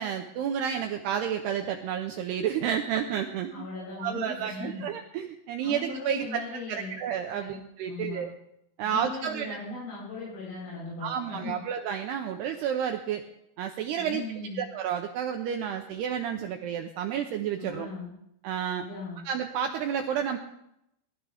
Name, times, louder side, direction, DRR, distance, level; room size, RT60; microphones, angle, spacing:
voice 1, 0.0-3.7 4.0-6.4 6.7-8.3 8.8-9.6 11.0-13.2 13.6-14.2 14.5-17.9 18.4-18.9 19.3-20.4, right 8 dB, 85° right, 5 dB, 2.3 m, -31 dB
voice 2, 3.5-4.8 5.6-7.0 7.3-7.6 7.9-8.2 8.8-11.6 14.0-14.6 17.6-18.1 18.7-19.2, left 3 dB, 85° left, -7 dB, 9.3 m, -38 dB
22.0 x 13.0 x 3.5 m, 0.79 s
omnidirectional pair, 5.7 m